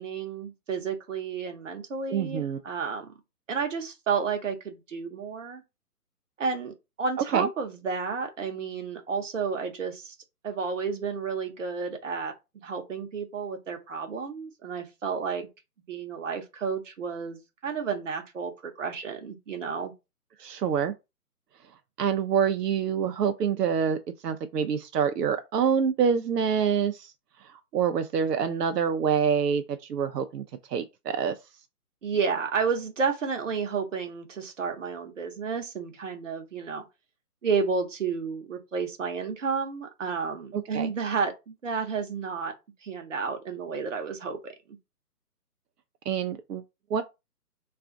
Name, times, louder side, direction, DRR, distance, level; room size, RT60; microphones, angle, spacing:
voice 1, 0.0-3.1 3.5-5.6 6.4-10.2 10.4-12.3 12.6-15.5 15.9-19.9 32.0-36.8 37.4-42.5 42.8-44.5, right 5 dB, 50° right, 0.9 m, -31 dB
voice 2, 2.1-2.6 7.3-7.5 20.4-20.9 22.0-24.0 24.2-27.1 27.7-30.4 30.7-31.4 40.5-40.9 46.1-46.6 46.9-47.0, right 7 dB, 85° right, 0.6 m, -26 dB
2.4 x 2.4 x 3.6 m
hypercardioid pair, 170°, 47 cm